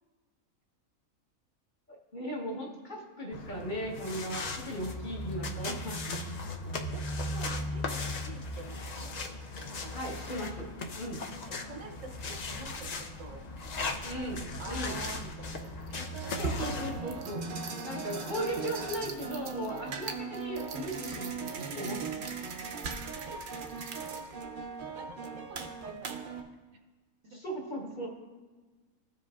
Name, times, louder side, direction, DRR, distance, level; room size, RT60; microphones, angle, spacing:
voice 1, 1.9-6.0 9.9-10.7 11.0-11.2 14.0-14.9 16.4-17.4 17.8-22.0 27.3-28.1, equal, 40° left, -2 dB, 1.1 m, -37 dB
sound 1, 3.3-17.0, left 2 dB, 70° left, 0.4 m, -37 dB
voice 2, 7.3-9.1 9.7-10.1 10.4-10.5 11.5-13.5 13.8-14.0 14.4-16.5 23.3-23.8 24.7-26.6, right 3 dB, 75° right, 4 dB, 1.1 m, -48 dB
sound 2, 15.6-26.4, right 4 dB, 55° right, 0.6 m, -38 dB
14.0 x 4.9 x 2.3 m, 1.3 s
omnidirectional pair, 1.4 m